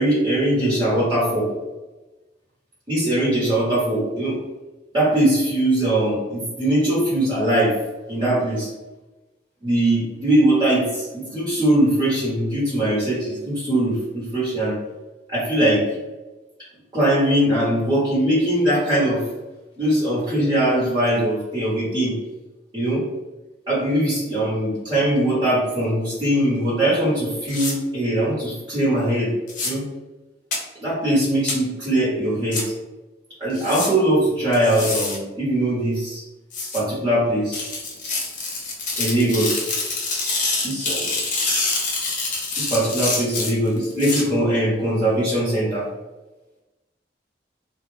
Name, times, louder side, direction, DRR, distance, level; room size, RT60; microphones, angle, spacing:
voice 1, 0.0-1.5 2.9-4.4 4.9-7.7 8.1-8.7 9.6-14.8 15.3-15.9 16.9-19.2 19.8-22.2 22.7-23.0 23.7-29.3 29.6-29.9 30.8-32.6 33.4-36.2 36.7-37.6 39.0-39.7 40.6-41.1 42.6-45.9, right 1 dB, 30° right, -10 dB, 1.1 m, -21 dB
sound 1, 27.5-27.7 29.5-29.7 30.5-30.6 31.5-31.6 32.5-32.6 33.5-33.9 34.5-35.2 36.5-36.8 37.5-44.2, left 3 dB, 45° left, 0.6 m, -26 dB
2.3 x 2.2 x 3.3 m, 1.1 s
head